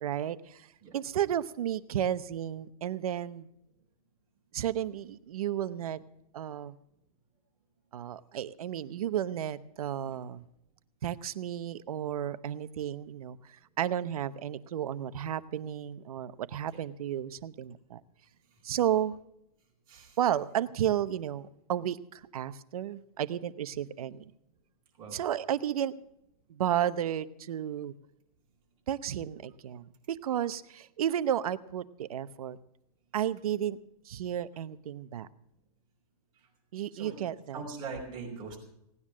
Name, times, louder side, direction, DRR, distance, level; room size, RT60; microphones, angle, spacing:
voice 1, 0.0-0.7 0.9-3.5 4.5-6.0 6.3-6.7 7.9-10.4 11.0-18.0 18.6-19.2 20.2-24.3 25.1-25.9 26.5-27.9 28.9-32.6 33.1-33.8 34.0-35.3 36.7-37.6, right 10 dB, 70° right, 15 dB, 0.9 m, -33 dB
voice 2, 37.5-38.6, right 4 dB, 25° right, -1 dB, 4.9 m, -40 dB
18.0 x 9.8 x 6.1 m, 0.79 s
hypercardioid pair, 165°, 19 cm